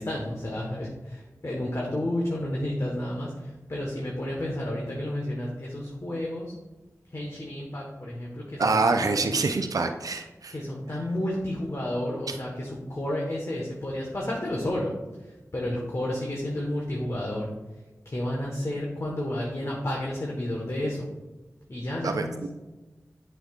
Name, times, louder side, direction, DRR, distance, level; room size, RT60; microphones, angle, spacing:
voice 1, 0.0-6.5 7.1-9.3 10.5-14.9 15.2-17.5 18.0-21.1 21.7-22.4, left 1 dB, 55° left, -3 dB, 1.3 m, -31 dB
voice 2, 8.6-10.5 22.0-22.5, right 3 dB, 80° right, 6 dB, 0.5 m, -26 dB
8.0 x 5.9 x 2.4 m, 1.1 s
cardioid pair, 40°, 6 cm